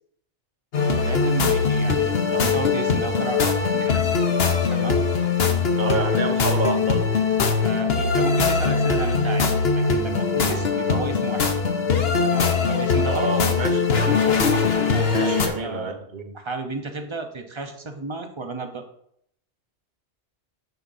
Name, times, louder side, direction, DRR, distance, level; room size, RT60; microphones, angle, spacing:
sound 1, 0.7-15.5, left 5 dB, 60° left, 1.2 m, -21 dB
voice 1, 1.0-4.2 4.7-5.0 7.6-9.5 9.7-11.5 12.2-13.6 14.9-15.9 16.3-18.8, right 3 dB, 30° right, 5 dB, 0.9 m, -32 dB
voice 2, 5.8-7.1 13.0-14.3 15.1-16.3, right 3 dB, 45° right, 5 dB, 1.1 m, -29 dB
10.5 x 6.8 x 2.7 m, 0.70 s
omnidirectional pair, 1.1 m